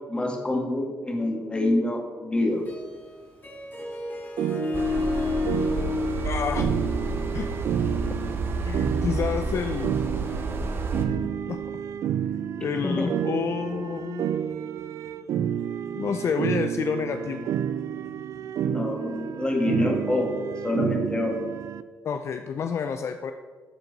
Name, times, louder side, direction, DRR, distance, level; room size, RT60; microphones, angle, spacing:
voice 1, 0.1-2.6 12.7-13.1 18.6-20.3 20.6-21.3, left 1 dB, 20° left, 1 dB, 1.7 m, -26 dB
Harp, 2.5-8.1, left 4 dB, 35° left, 2.1 m, -32 dB
sound 1, 4.4-21.8, right 9 dB, 70° right, 0.3 m, -30 dB
sound 2, 4.7-11.1, right 3 dB, 45° right, 1.0 m, -30 dB
voice 2, 6.2-6.7 7.3-7.5 8.6-10.0 11.1-11.6 12.6-14.3 15.9-17.5 22.0-23.3, left 6 dB, 55° left, 7 dB, 0.4 m, -29 dB
13.0 x 4.5 x 4.0 m, 1.5 s
cardioid pair, 80°, 6 cm